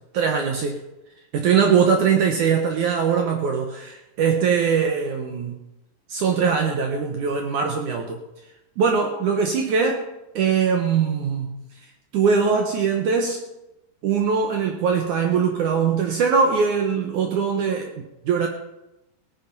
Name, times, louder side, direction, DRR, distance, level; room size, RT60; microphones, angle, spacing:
voice 1, 0.1-0.8 1.3-5.6 6.1-8.2 8.8-10.0 10.4-11.6 12.1-13.4 14.0-17.9 18.3-18.5, right 6 dB, 70° right, 3 dB, 2.0 m, -21 dB
18.0 x 9.1 x 5.4 m, 0.94 s
omnidirectional pair, 4.6 m